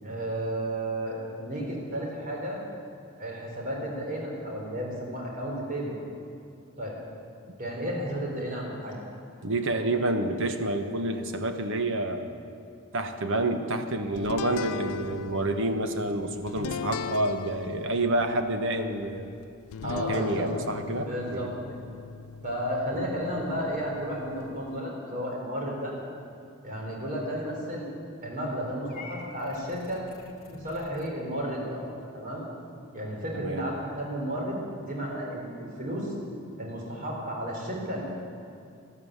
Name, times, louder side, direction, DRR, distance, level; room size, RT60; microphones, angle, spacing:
voice 1, 0.0-2.6 3.2-6.0 6.8-7.0 7.6-9.0 9.7-9.8 19.8-20.5 21.0-21.8 22.4-25.9 26.6-27.9 28.2-30.0 30.5-31.9 32.1-32.4 32.9-34.6 34.9-36.1 36.6-38.0, equal, 40° right, -2 dB, 4.0 m, -33 dB
voice 2, 9.4-12.4 12.9-19.3 19.8-21.5 22.9-23.1 33.3-33.7, right 2 dB, 65° right, 7 dB, 1.2 m, -29 dB
sound 1, 14.2-24.8, left 6 dB, 70° left, 0.4 m, -39 dB
Purr / Meow, 28.9-31.1, left 4 dB, 45° left, 1.7 m, -48 dB
13.0 x 13.0 x 8.1 m, 2.5 s
head